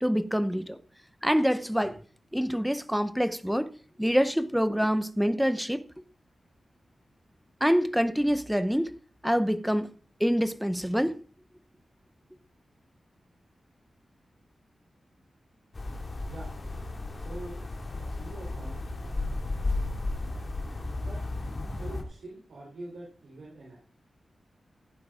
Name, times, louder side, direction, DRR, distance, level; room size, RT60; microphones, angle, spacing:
voice 1, 0.0-0.8 1.2-2.0 2.3-3.7 4.0-5.8 7.6-8.9 9.2-9.9 10.2-11.2, equal, ahead, 0.7 m, -26 dB
sound 1, 15.7-22.0, left 2 dB, 30° left, 2.7 m, -34 dB
voice 2, 17.1-17.6 17.9-18.8 20.8-21.2 21.7-23.8, right 2 dB, 85° right, 3.6 m, -44 dB
15.5 x 9.3 x 3.7 m
wide cardioid pair, 170°, 0 cm